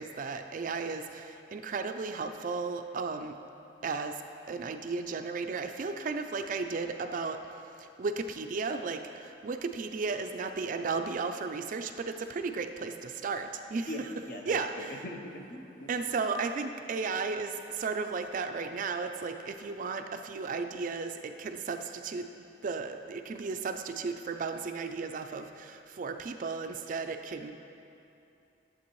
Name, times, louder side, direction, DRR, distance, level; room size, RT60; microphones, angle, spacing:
voice 1, 0.0-3.4 3.8-4.2 4.5-7.4 7.8-14.1 14.5-15.0 15.9-22.3 22.6-27.6, right 4 dB, 45° right, 7 dB, 0.4 m, -34 dB
voice 2, 13.9-15.9, left 1 dB, 50° left, 2 dB, 0.8 m, -41 dB
11.5 x 7.6 x 3.1 m, 2.7 s
head